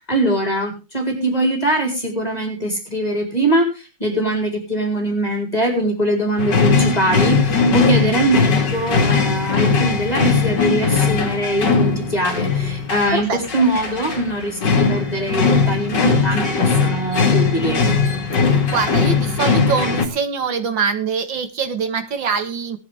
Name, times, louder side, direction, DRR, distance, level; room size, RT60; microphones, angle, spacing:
voice 1, 0.1-17.8, right 1 dB, 20° left, 1 dB, 4.1 m, -22 dB
sound 1, 6.4-20.1, left 4 dB, 65° left, 2.7 m, -19 dB
voice 2, 18.7-22.8, right 5 dB, 80° right, 8 dB, 2.4 m, -23 dB
18.5 x 10.5 x 3.5 m, 0.29 s
omnidirectional pair, 2.0 m